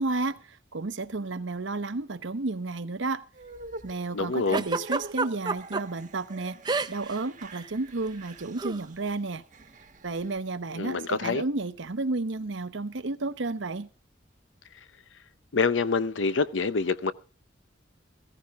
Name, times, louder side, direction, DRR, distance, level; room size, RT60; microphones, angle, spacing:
voice 1, 0.0-3.2 3.8-6.6 6.9-9.4 10.0-13.9, right 3 dB, 80° right, 0.9 m, -32 dB
sound 1, 3.3-10.7, right 2 dB, 40° right, 1.2 m, -47 dB
voice 2, 4.1-4.6 10.7-11.4 15.5-17.1, left 4 dB, 85° left, 0.7 m, -26 dB
Giggle, 4.5-5.8 6.6-7.2 7.4-7.7 8.6-8.8, right 3 dB, 20° right, 0.6 m, -28 dB
15.0 x 14.5 x 3.6 m
head